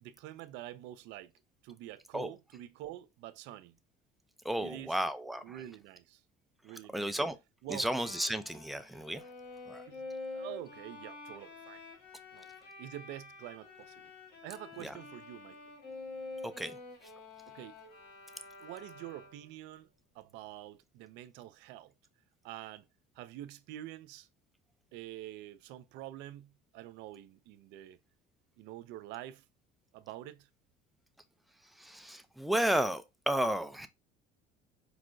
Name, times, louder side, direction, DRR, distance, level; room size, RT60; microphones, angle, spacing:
voice 1, 0.0-1.3 1.6-3.8 4.6-5.0 5.4-6.2 6.6-7.1 7.6-7.9 9.9-10.0 10.3-11.8 12.3-14.1 14.4-15.6 17.5-17.8 18.6-19.9 20.1-21.9 22.4-22.8 23.2-24.3 24.9-28.0 28.6-29.4 29.9-30.5, right 13 dB, 70° right, 0.4 m, -46 dB
voice 2, 4.4-5.5 6.9-7.4 7.7-9.2 9.7-9.8 14.8-14.9 16.4-16.8 31.8-33.9, right 1 dB, ahead, 0.4 m, -33 dB
Bowed string instrument, 7.7-19.6, left 3 dB, 65° left, 1.2 m, -48 dB
4.4 x 2.0 x 2.5 m
supercardioid pair, 85°, 19 cm